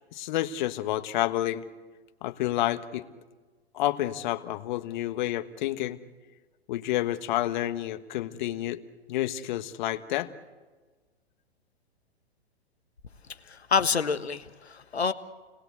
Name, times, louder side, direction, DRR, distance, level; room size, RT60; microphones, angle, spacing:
voice 1, 0.1-1.6 2.2-3.1 3.7-6.0 6.7-8.8 9.1-10.3, left 14 dB, 45° left, 10 dB, 1.5 m, -29 dB
voice 2, 13.5-15.1, left 5 dB, 80° left, 10 dB, 1.5 m, -27 dB
29.5 x 20.0 x 8.3 m, 1.3 s
figure-of-eight pair, 110°, 32 cm